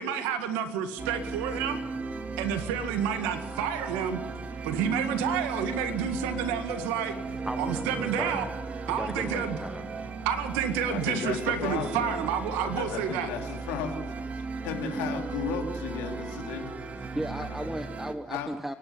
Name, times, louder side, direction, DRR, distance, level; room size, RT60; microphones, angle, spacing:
voice 1, 0.0-1.8 2.4-4.2 4.6-7.2 7.6-8.5 8.9-9.6 10.3-13.3, right 8 dB, 80° right, 9 dB, 1.8 m, -30 dB
sound 1, 1.0-18.1, right 4 dB, 40° right, 2.7 m, -36 dB
voice 2, 7.4-8.5 8.9-9.9 15.0-15.2 17.1-18.7, right 1 dB, 10° right, 9 dB, 1.5 m, -36 dB
voice 3, 10.8-12.2 12.6-16.7 17.3-17.5 18.3-18.5, left 7 dB, 80° left, 3 dB, 3.0 m, -35 dB
29.0 x 11.0 x 9.6 m, 1.1 s
hypercardioid pair, 55°, 4 cm